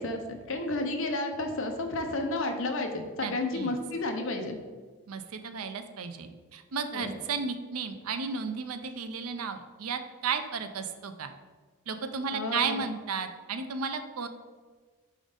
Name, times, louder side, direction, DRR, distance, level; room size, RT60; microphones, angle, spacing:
voice 1, 0.0-4.6 6.9-7.1 12.3-12.8, left 2 dB, 65° left, 4 dB, 0.8 m, -31 dB
voice 2, 3.2-3.8 5.1-11.3 11.9-14.3, right 5 dB, 85° right, 9 dB, 0.5 m, -34 dB
5.2 x 3.8 x 5.0 m, 1.4 s
head